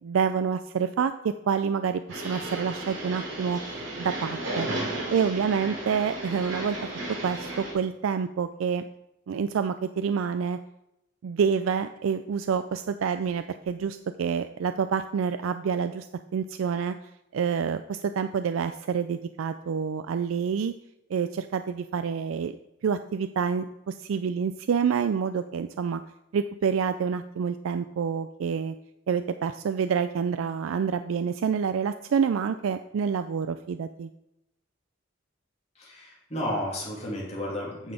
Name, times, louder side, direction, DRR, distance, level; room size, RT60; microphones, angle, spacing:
voice 1, 0.0-3.6 4.0-4.7 5.1-6.8 7.2-8.8 9.3-10.6 11.2-16.1 16.3-16.9 17.3-20.7 21.1-22.5 22.8-26.0 26.3-28.7 29.1-34.1, right 6 dB, 85° right, 10 dB, 0.4 m, -27 dB
sound 1, 2.1-7.7, right 1 dB, 70° right, 3.1 m, -34 dB
voice 2, 35.7-37.9, left 1 dB, 35° left, -4 dB, 2.9 m, -32 dB
9.1 x 6.0 x 5.0 m, 0.87 s
head